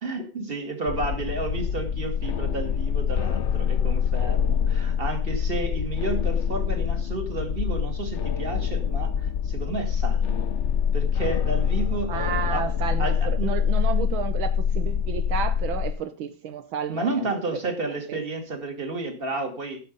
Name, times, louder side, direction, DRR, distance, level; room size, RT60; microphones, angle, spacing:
voice 1, 0.0-10.5 10.9-13.6 14.0-14.1 16.9-19.8, right 3 dB, 25° right, 2.4 m, -32 dB
sound 1, 0.9-15.9, left 8 dB, 85° left, 0.6 m, -25 dB
voice 2, 12.1-17.3 18.1-18.2, right 9 dB, 75° right, 1.7 m, -31 dB
15.0 x 7.0 x 5.3 m
omnidirectional pair, 2.2 m